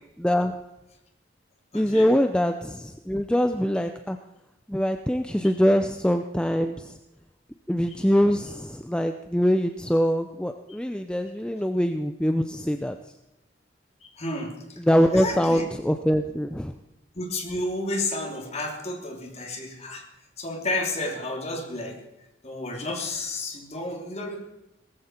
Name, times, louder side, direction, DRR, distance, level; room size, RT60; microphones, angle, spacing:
voice 1, 0.2-0.5 1.7-4.2 4.7-6.9 7.7-13.0 14.8-16.7, equal, 5° left, 7 dB, 0.5 m, -23 dB
voice 2, 1.7-2.1 14.0-14.6 15.1-15.7 17.1-20.0 20.4-22.0 22.4-24.4, left 2 dB, 35° left, 1 dB, 3.0 m, -31 dB
18.5 x 14.5 x 4.4 m, 0.94 s
head